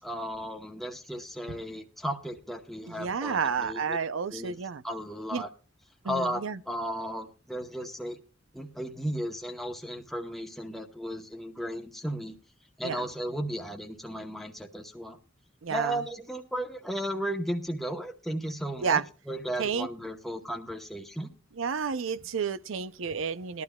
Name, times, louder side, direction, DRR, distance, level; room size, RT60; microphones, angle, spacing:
voice 1, 0.0-4.0 4.3-4.5 4.8-5.5 6.0-8.2 8.5-12.4 12.8-15.2 15.7-21.3, equal, ahead, 1.0 m, -35 dB
voice 2, 2.9-4.8 5.3-5.4 6.0-6.6 12.8-13.1 15.6-16.0 18.8-19.0 19.6-19.9 21.6-23.6, right 6 dB, 85° right, 0.6 m, -30 dB
19.0 x 12.0 x 2.3 m
head